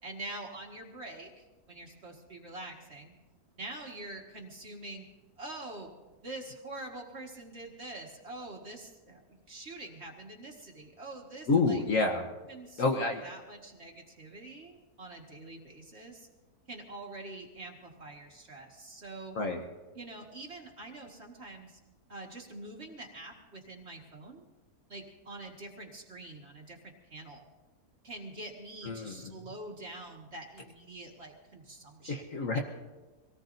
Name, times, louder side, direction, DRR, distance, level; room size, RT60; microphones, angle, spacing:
voice 1, 0.0-3.1 3.6-5.1 5.4-5.9 6.2-11.8 12.5-16.3 16.7-19.4 19.9-21.8 22.1-24.5 24.9-27.5 28.0-32.2 32.5-32.6, right 2 dB, 45° right, 0 dB, 1.9 m, -45 dB
voice 2, 11.5-12.3 12.8-13.2 19.3-19.6 28.8-29.3 32.1-32.6, left 3 dB, 60° left, 2 dB, 1.4 m, -28 dB
25.0 x 18.0 x 2.6 m, 1.2 s
omnidirectional pair, 1.7 m